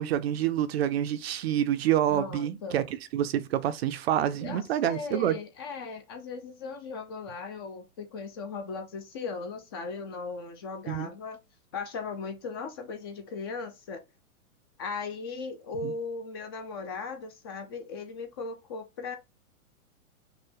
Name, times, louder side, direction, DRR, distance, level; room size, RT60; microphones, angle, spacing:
voice 1, 0.0-2.8 3.1-5.4 10.9-11.1 15.8-15.9, right 11 dB, 45° right, 0.5 m, -27 dB
voice 2, 2.1-2.8 4.4-11.4 11.7-14.0 14.8-19.2, left 4 dB, 20° left, 0.3 m, -37 dB
5.6 x 2.1 x 3.6 m
hypercardioid pair, 130°, 44 cm